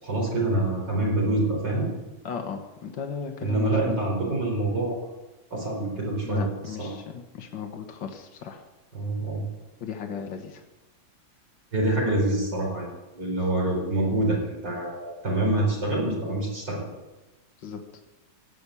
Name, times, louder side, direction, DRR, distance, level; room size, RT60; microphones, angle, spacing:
voice 1, 0.0-1.9 3.4-5.0 5.5-6.9 8.9-9.4 11.7-16.8, right 1 dB, 65° right, -2 dB, 5.2 m, -26 dB
voice 2, 2.2-4.0 6.3-8.6 9.8-10.6 17.6-17.8, left 6 dB, 75° left, 4 dB, 2.1 m, -36 dB
17.0 x 8.4 x 8.5 m, 1.1 s
omnidirectional pair, 2.1 m